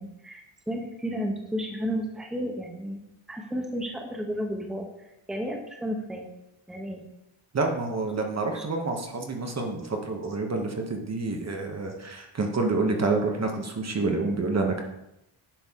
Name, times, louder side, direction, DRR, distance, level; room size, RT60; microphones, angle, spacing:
voice 1, 0.0-3.0 3.3-4.9 5.3-6.3 6.7-7.0 8.5-8.6 14.2-14.5, equal, ahead, 1 dB, 0.9 m, -32 dB
voice 2, 7.5-14.8, right 3 dB, 30° right, 3 dB, 1.1 m, -28 dB
10.0 x 6.2 x 3.6 m, 0.88 s
wide cardioid pair, 150°, 49 cm